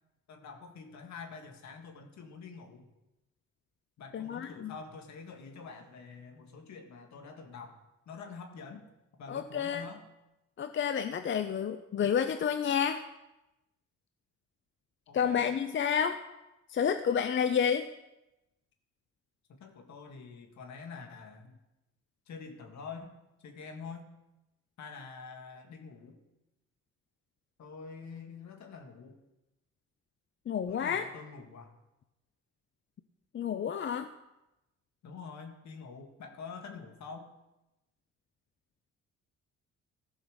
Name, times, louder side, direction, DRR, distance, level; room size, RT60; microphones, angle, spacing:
voice 1, 0.3-2.9 4.0-7.8 8.1-8.9 9.2-10.0 15.1-15.5 19.5-21.6 22.3-24.1 24.8-26.2 27.6-29.2 30.7-31.8 35.0-37.3, left 5 dB, 65° left, 5 dB, 1.9 m, -46 dB
voice 2, 4.1-4.7 9.3-9.8 10.6-13.0 15.1-16.2 16.7-17.9 30.5-31.0 33.3-34.1, left 7 dB, 40° left, 9 dB, 0.6 m, -30 dB
14.5 x 5.5 x 6.4 m, 0.95 s
cardioid pair, 90°, 30 cm